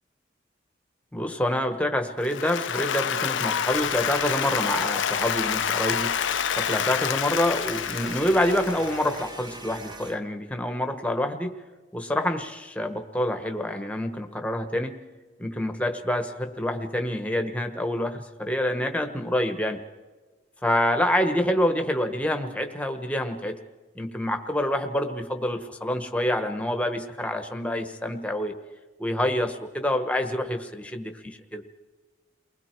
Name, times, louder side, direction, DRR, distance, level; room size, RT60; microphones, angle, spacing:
voice 1, 1.1-6.1 6.5-11.6 11.9-14.9 15.4-19.8 20.6-23.6 23.9-28.5 29.0-31.6, left 1 dB, 5° left, 6 dB, 1.2 m, -27 dB
Applause, 2.2-9.4, left 8 dB, 75° left, 0.6 m, -28 dB
sound 1, 3.7-10.2, right 2 dB, 20° right, 1.1 m, -41 dB
29.0 x 20.0 x 4.6 m, 1.3 s
head